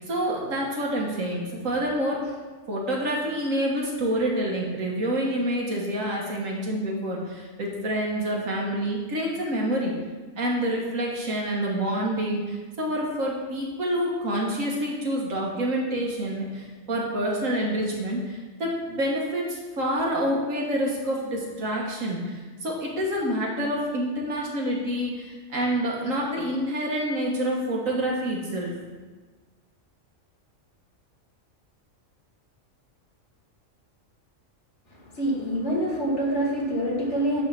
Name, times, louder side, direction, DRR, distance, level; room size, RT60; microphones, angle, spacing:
voice 1, 0.0-2.2 2.7-9.9 10.4-28.7, right 1 dB, 85° right, -2 dB, 1.9 m, -27 dB
voice 2, 35.1-37.4, right 1 dB, 60° left, -4 dB, 2.3 m, -26 dB
9.6 x 3.7 x 5.9 m, 1.4 s
omnidirectional pair, 1.3 m